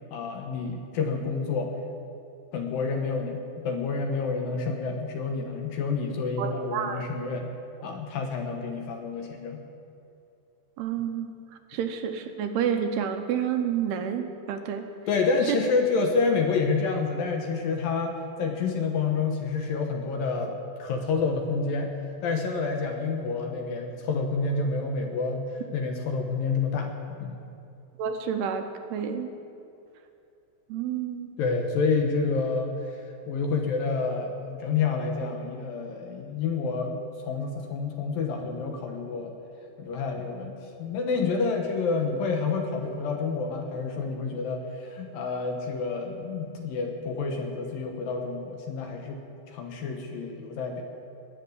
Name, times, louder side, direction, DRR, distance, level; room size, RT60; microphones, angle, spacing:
voice 1, 0.1-1.7 2.5-7.5 7.8-9.6 15.1-18.1 18.4-21.9 22.2-25.4 25.7-26.9 27.2-27.5 31.4-33.0 33.3-37.0 37.3-39.3 39.8-50.8, left 4 dB, 70° left, 3 dB, 2.5 m, -28 dB
voice 2, 6.4-7.1 10.8-11.3 11.7-14.9 15.5-15.6 28.0-29.3 30.7-31.3, right 8 dB, 75° right, 6 dB, 2.7 m, -29 dB
19.0 x 7.4 x 9.8 m, 2.7 s
omnidirectional pair, 4.9 m